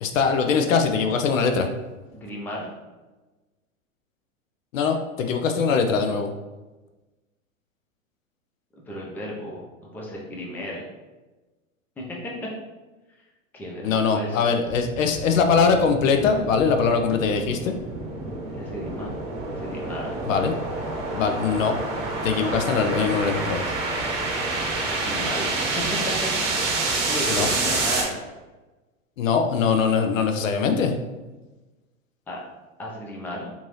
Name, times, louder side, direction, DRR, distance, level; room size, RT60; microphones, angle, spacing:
voice 1, 0.0-1.7 4.7-6.3 13.8-17.7 20.2-20.5 21.1-21.8 22.2-23.7 27.3-27.5 29.2-30.9, left 5 dB, 75° left, 5 dB, 0.6 m, -22 dB
voice 2, 2.1-2.7 8.9-9.6 9.9-10.8 12.0-12.3 13.5-14.5 18.5-19.1 19.5-20.2 24.9-25.8 26.7-28.2 32.3-32.4 32.8-33.5, equal, 5° left, -3 dB, 0.4 m, -34 dB
sound 1, 14.7-28.0, right 3 dB, 35° right, 0.9 m, -28 dB
3.5 x 2.7 x 3.0 m, 1.2 s
hypercardioid pair, 105°, 40 cm